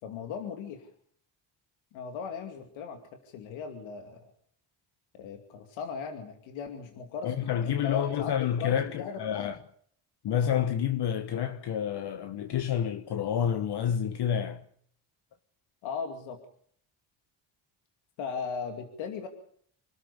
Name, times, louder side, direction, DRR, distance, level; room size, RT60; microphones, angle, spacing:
voice 1, 0.0-0.9 1.9-4.3 5.1-7.4 7.6-9.5 15.8-16.4 18.2-19.3, left 6 dB, 90° left, 2.5 m, -38 dB
voice 2, 7.2-9.6 10.2-14.6, left 9 dB, 60° left, 1.3 m, -29 dB
26.5 x 13.0 x 8.2 m
cardioid pair, 90°, 46 cm